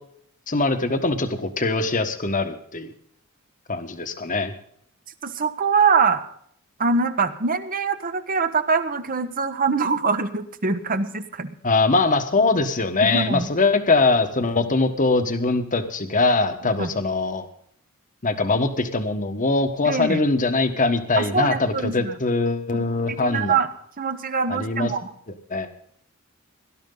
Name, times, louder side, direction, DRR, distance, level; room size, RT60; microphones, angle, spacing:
voice 1, 0.5-2.9 3.7-4.5 11.6-17.4 18.2-23.6 24.5-24.9 25.5-25.7, left 3 dB, 35° left, 8 dB, 1.4 m, -22 dB
voice 2, 5.2-6.2 6.8-11.5 13.0-13.5 16.8-16.9 19.8-20.2 21.2-22.1 22.7-23.7 24.0-25.1, right 5 dB, 40° right, 10 dB, 1.1 m, -23 dB
18.0 x 12.0 x 3.9 m, 0.64 s
head